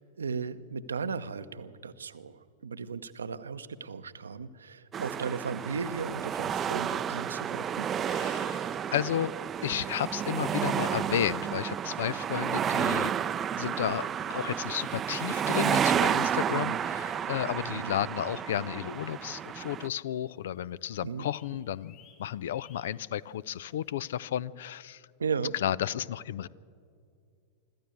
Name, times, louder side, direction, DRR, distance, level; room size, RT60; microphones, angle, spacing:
voice 1, 0.0-7.9 16.5-16.8 17.7-17.9 21.0-21.3 25.2-25.5, right 5 dB, 70° right, 12 dB, 0.8 m, -36 dB
sound 1, 4.9-19.9, right 8 dB, 25° right, 0.5 m, -31 dB
voice 2, 8.0-9.3 9.6-13.1 13.6-25.0 25.5-26.5, left 11 dB, 60° left, 21 dB, 0.5 m, -33 dB
sound 2, 14.7-16.4 16.7-16.9 17.3-17.4 18.2-18.3 18.5-18.6 18.8-19.9 20.2-20.6 20.8-24.2, left 8 dB, 40° left, 4.3 m, -62 dB
25.0 x 13.5 x 8.2 m, 2.3 s
figure-of-eight pair, 90°, 0 cm